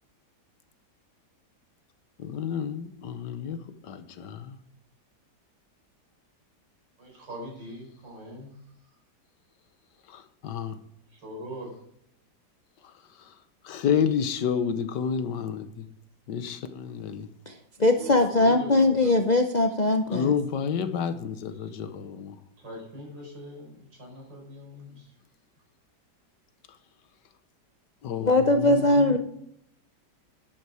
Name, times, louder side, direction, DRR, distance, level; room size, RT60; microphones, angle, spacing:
voice 1, 2.2-3.6 3.8-4.6 10.1-10.8 13.6-15.9 16.3-17.3 20.1-22.4 28.0-29.2, left 7 dB, 80° left, 10 dB, 1.6 m, -30 dB
voice 2, 7.0-8.5 11.1-11.7 17.8-19.2 21.4-21.7 22.6-25.1, equal, 90° right, -1 dB, 5.2 m, -42 dB
voice 3, 17.8-20.3 28.3-29.2, left 2 dB, 45° left, 5 dB, 0.5 m, -21 dB
11.0 x 8.3 x 4.9 m, 0.71 s
omnidirectional pair, 1.9 m